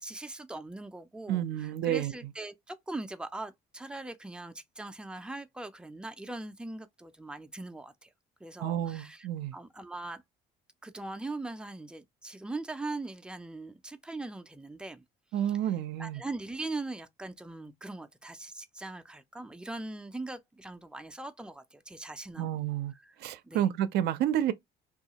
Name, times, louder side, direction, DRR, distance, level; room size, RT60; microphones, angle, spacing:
voice 1, 0.0-8.1 8.4-10.2 10.8-15.0 15.4-15.5 16.0-22.5 22.9-23.2 23.4-23.6, right 2 dB, 5° right, 0.4 m, -41 dB
voice 2, 1.3-2.1 8.6-9.5 15.3-16.2 22.4-22.9 23.2-24.5, right 11 dB, 75° right, 0.4 m, -30 dB
2.7 x 2.4 x 2.8 m
cardioid pair, 110°, 17 cm